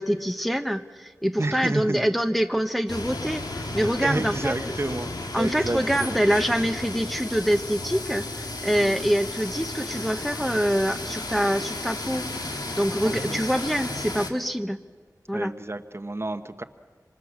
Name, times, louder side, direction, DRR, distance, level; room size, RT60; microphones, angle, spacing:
voice 1, 0.0-3.5 3.7-4.7 5.3-14.8 15.3-15.5, equal, ahead, 7 dB, 1.1 m, -25 dB
voice 2, 1.4-2.0 4.0-5.1 5.3-6.2 8.8-9.1 13.0-13.4 15.3-16.6, right 2 dB, 40° right, 9 dB, 1.1 m, -30 dB
sound 1, 2.9-14.3, left 2 dB, 90° left, 2.1 m, -33 dB
26.5 x 26.0 x 7.3 m, 1.5 s
wide cardioid pair, 60°, 6 cm